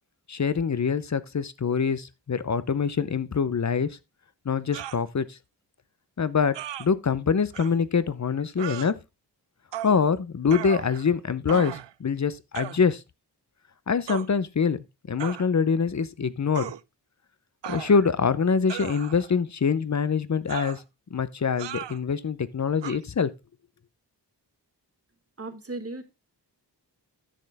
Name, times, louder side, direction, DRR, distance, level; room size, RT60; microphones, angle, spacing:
voice 1, 0.3-4.0 4.5-5.4 6.2-9.0 9.8-13.0 13.9-14.8 15.1-16.7 17.7-20.8 21.1-23.3, left 6 dB, 40° left, 0.6 m, -25 dB
sound 1, 4.7-5.0 6.5-6.9 7.5-7.7 8.6-8.9 9.7-10.0 10.5-11.1 11.5-11.9 12.5-12.8 14.1-14.3 15.2-15.5 16.5-16.8 17.6-18.2 18.7-19.3 20.5-20.8 21.6-22.0 22.8-23.0, right 11 dB, 90° right, 0.5 m, -36 dB
voice 2, 25.4-26.0, right 2 dB, 35° right, 1.5 m, -36 dB
10.0 x 6.6 x 3.4 m
wide cardioid pair, 80°, 42 cm